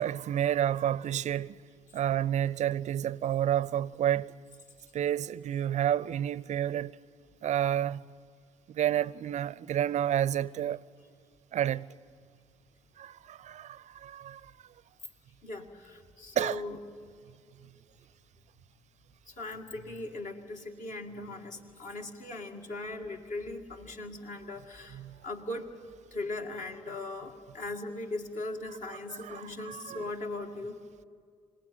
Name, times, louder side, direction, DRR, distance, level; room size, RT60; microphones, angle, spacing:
voice 1, 0.0-1.6 1.9-4.3 4.9-7.0 7.4-8.0 8.7-10.8 11.5-11.8 13.0-14.5 16.4-16.6 24.9-25.2 29.1-30.1, right 11 dB, 45° right, 0.6 m, -30 dB
voice 2, 15.4-16.8 19.3-25.7 26.1-30.8, left 2 dB, 50° left, 2.2 m, -39 dB
26.0 x 18.0 x 9.3 m
figure-of-eight pair, 45°, 17 cm